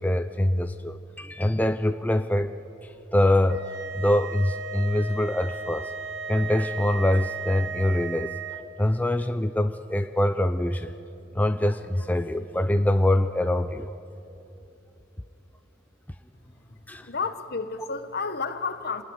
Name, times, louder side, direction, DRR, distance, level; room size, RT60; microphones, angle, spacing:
voice 1, 0.0-2.5 2.8-3.7 4.0-5.9 6.3-10.9 11.3-13.9 16.9-17.1, left 1 dB, 10° left, 8 dB, 0.5 m, -24 dB
sound 1, 3.5-8.6, right 4 dB, 65° right, 1.2 m, -36 dB
voice 2, 17.0-19.0, left 4 dB, 55° left, 10 dB, 1.3 m, -31 dB
27.0 x 19.0 x 9.8 m, 3.0 s
head